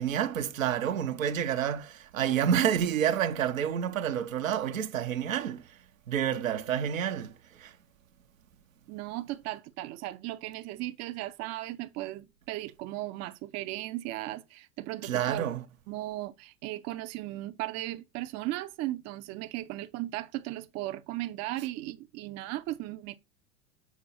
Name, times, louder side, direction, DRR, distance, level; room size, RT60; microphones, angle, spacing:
voice 1, 0.0-5.8 6.1-7.7 15.0-15.6, right 9 dB, 85° right, 0.9 m, -29 dB
voice 2, 8.9-15.4 15.9-23.2, right 16 dB, 40° right, 0.6 m, -36 dB
7.1 x 4.5 x 4.2 m
hypercardioid pair, 90°, 39 cm